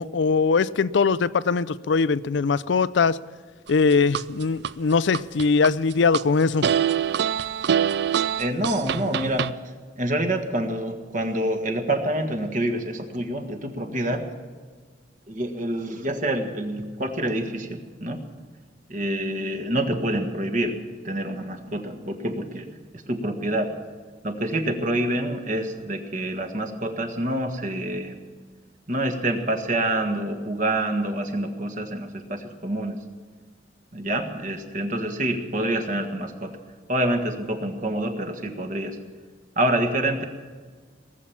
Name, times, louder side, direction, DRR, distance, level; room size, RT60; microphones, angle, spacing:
voice 1, 0.0-3.2 3.7-6.6, left 4 dB, 75° left, 18 dB, 0.5 m, -21 dB
sound 1, 3.7-4.7 5.1-6.2 6.6-9.5, right 8 dB, 65° right, 0.4 m, -24 dB
voice 2, 8.4-9.5 10.0-14.2 15.3-18.2 18.9-20.8 21.0-23.7 24.2-28.2 28.9-33.0 33.9-36.5 36.9-39.0 39.5-40.2, right 1 dB, 45° right, 4 dB, 1.7 m, -27 dB
19.0 x 7.3 x 8.5 m, 1.5 s
head